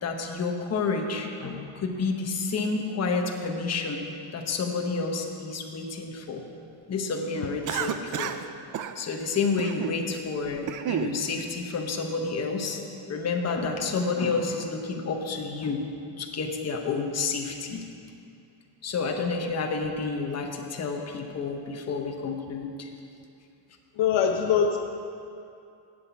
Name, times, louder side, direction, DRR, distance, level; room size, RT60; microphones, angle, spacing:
voice 1, 0.0-4.0 4.3-6.4 6.9-8.3 9.0-12.8 13.1-15.8 16.2-17.8 18.8-22.9, left 4 dB, 30° left, 2 dB, 1.1 m, -30 dB
Cough, 7.7-8.5 8.7-8.9 9.6-10.0 10.4-11.1, right 9 dB, 40° right, 0.5 m, -30 dB
voice 2, 24.0-24.8, left 7 dB, 65° left, 3 dB, 0.8 m, -22 dB
7.9 x 7.6 x 8.3 m, 2.6 s
cardioid pair, 135°, 49 cm